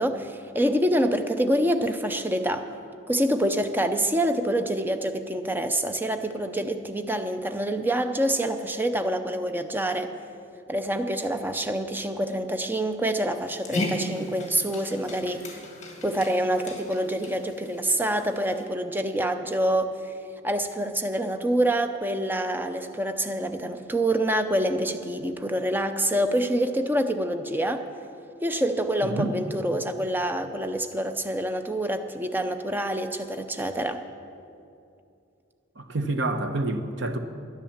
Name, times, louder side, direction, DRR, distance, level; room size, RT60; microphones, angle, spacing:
voice 1, 0.0-2.7 3.1-10.1 10.7-15.6 16.0-20.1 20.4-27.8 28.4-34.0, right 1 dB, 10° right, 7 dB, 0.5 m, -26 dB
Dog, 13.3-18.7, left 1 dB, 35° left, 1.7 m, -36 dB
voice 2, 29.0-29.3 35.8-37.2, right 2 dB, 60° right, 7 dB, 0.9 m, -28 dB
10.5 x 10.5 x 7.2 m, 2.6 s
head